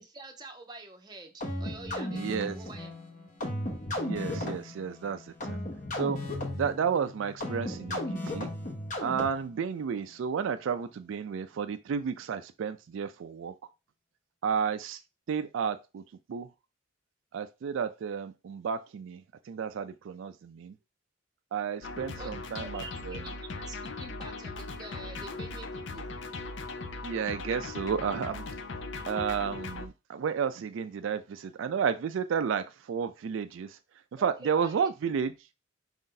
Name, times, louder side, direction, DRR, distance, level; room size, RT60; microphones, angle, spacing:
voice 1, 0.0-2.9 22.2-22.3 22.6-26.1 34.2-34.9, right 3 dB, 20° right, 0.7 m, -47 dB
sound 1, 1.4-9.6, left 1 dB, 35° left, 0.9 m, -35 dB
voice 2, 2.1-2.6 4.0-5.6 5.9-6.2 6.5-8.5 9.0-13.5 14.4-15.0 15.3-16.0 16.3-16.5 17.3-20.7 21.5-23.2 27.0-28.6 29.1-33.8 34.1-35.3, right 6 dB, 70° right, 0.3 m, -32 dB
sound 2, 21.8-29.9, left 3 dB, 60° left, 0.5 m, -39 dB
4.9 x 2.7 x 3.7 m
head